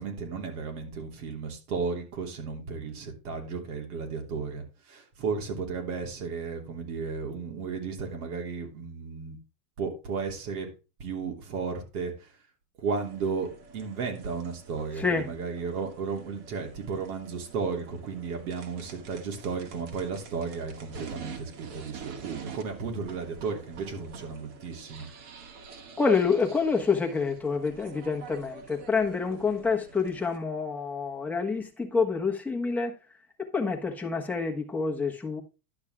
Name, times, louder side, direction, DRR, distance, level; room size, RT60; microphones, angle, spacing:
voice 1, 0.0-9.4 9.8-10.7 11.0-12.3 12.8-25.1, right 5 dB, 70° right, 3.2 m, -34 dB
sound 1, 12.9-30.4, right 6 dB, 50° right, 2.2 m, -47 dB
voice 2, 15.0-15.3 26.0-32.9 33.4-35.4, left 4 dB, 5° left, 1.3 m, -27 dB
11.5 x 6.3 x 3.6 m
supercardioid pair, 150°, 46 cm